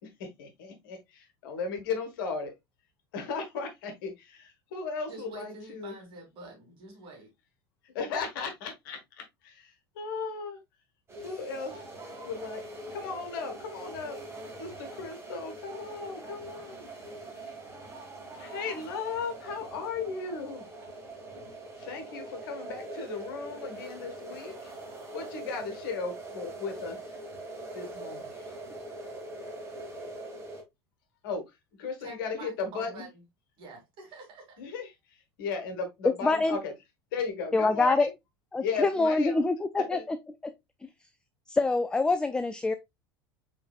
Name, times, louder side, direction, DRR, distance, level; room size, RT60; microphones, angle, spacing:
voice 1, 0.0-2.5 3.1-5.9 7.8-10.6 11.2-11.9 12.3-12.6 12.9-14.2 14.6-16.9 17.4-17.5 18.4-20.7 21.8-24.8 25.1-27.2 27.7-28.5 31.2-31.4 31.8-33.1 34.6-36.7 37.1-38.1 38.6-39.5 39.9-40.0, left 5 dB, 60° left, 1.3 m, -36 dB
voice 2, 5.1-7.3 32.0-33.2 33.6-34.5, right 3 dB, 40° right, 2.4 m, -47 dB
sound 1, 11.1-30.6, right 2 dB, 20° right, 1.8 m, -43 dB
voice 3, 36.2-36.6 37.5-38.1 38.5-40.2 40.4-40.5 41.5-42.7, left 3 dB, 5° left, 0.3 m, -25 dB
5.0 x 3.8 x 2.3 m
figure-of-eight pair, 80°, 13 cm